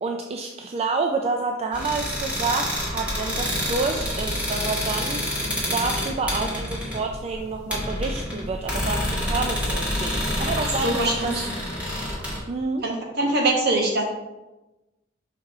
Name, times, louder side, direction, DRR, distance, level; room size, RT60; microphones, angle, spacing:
voice 1, 0.0-11.3 12.5-12.8, right 3 dB, 30° right, 3 dB, 0.4 m, -28 dB
sound 1, 1.7-12.4, left 1 dB, 5° right, 1.6 m, -28 dB
voice 2, 10.6-11.5 12.8-14.0, right 2 dB, 55° right, 0 dB, 1.3 m, -23 dB
5.8 x 4.7 x 3.6 m, 1.0 s
head